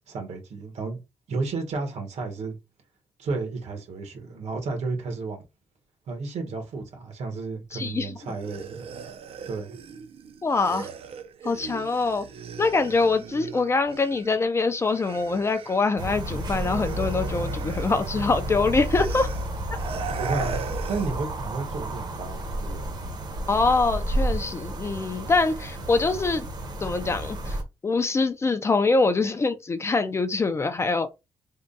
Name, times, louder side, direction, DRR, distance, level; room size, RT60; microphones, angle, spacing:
voice 1, 0.1-1.0 1.3-2.6 3.2-5.4 6.1-8.9 9.5-9.8 20.2-20.6 20.9-22.9, right 3 dB, 80° right, 1.4 m, -32 dB
voice 2, 7.7-8.2 10.4-10.9 11.4-12.3 12.6-19.3 23.5-26.5 26.8-27.6 27.8-31.1, left 3 dB, 25° left, 0.4 m, -24 dB
sound 1, 8.2-14.4 14.7-21.2, right 6 dB, 55° right, 0.5 m, -39 dB
sound 2, 16.0-27.6, right 1 dB, 40° right, 0.8 m, -31 dB
3.6 x 2.2 x 3.9 m
wide cardioid pair, 165°, 11 cm